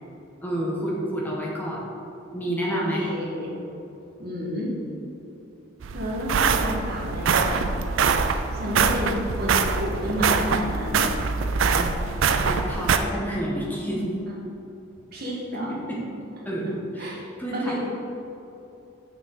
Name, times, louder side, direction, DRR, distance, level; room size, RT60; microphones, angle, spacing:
voice 1, 0.4-1.8 2.3-3.1 11.7-12.1 12.4-14.1 15.5-16.0 16.4-17.8, right 1 dB, 10° left, -4 dB, 1.2 m, -29 dB
voice 2, 2.7-3.5 4.2-4.7 5.9-7.8 8.6-11.1 14.2-14.3 15.1-15.7 17.0-17.1 17.5-17.8, equal, 50° right, -5 dB, 1.7 m, -30 dB
sound 1, 5.8-13.0, right 5 dB, 75° right, 0.4 m, -23 dB
6.6 x 6.3 x 4.0 m, 2.9 s
head